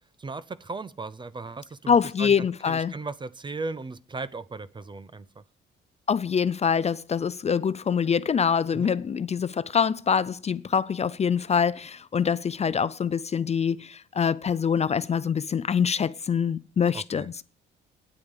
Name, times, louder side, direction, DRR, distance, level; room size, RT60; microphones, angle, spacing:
voice 1, 0.2-5.4 8.7-9.0 16.9-17.3, right 3 dB, 25° right, 0.6 m, -37 dB
voice 2, 1.9-2.9 6.1-17.4, left 7 dB, 35° left, 0.4 m, -25 dB
9.6 x 8.5 x 6.6 m
cardioid pair, 90°, 20 cm